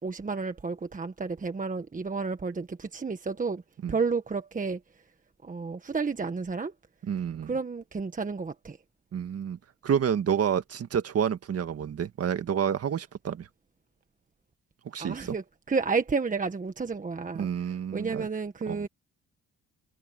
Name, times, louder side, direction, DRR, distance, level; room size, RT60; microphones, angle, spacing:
voice 1, 0.0-3.6 3.9-4.8 5.4-6.7 7.5-8.8 15.0-18.9, right 4 dB, 25° right, 1.5 m, -31 dB
voice 2, 7.0-7.5 9.1-13.5 14.9-15.4 17.4-18.3 18.7-18.9, right 8 dB, 55° right, 1.7 m, -29 dB
cardioid pair, 90°, 30 cm